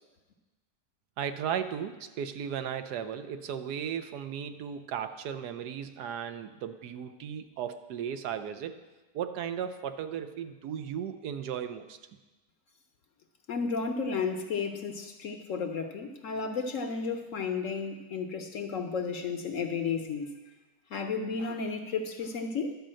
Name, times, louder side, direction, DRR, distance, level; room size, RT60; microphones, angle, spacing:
voice 1, 1.2-8.8 9.1-12.0, right 8 dB, 75° right, 9 dB, 1.2 m, -36 dB
voice 2, 13.5-20.3 20.9-22.8, left 5 dB, 60° left, 5 dB, 1.0 m, -33 dB
11.5 x 5.1 x 7.5 m, 1.2 s
omnidirectional pair, 1.8 m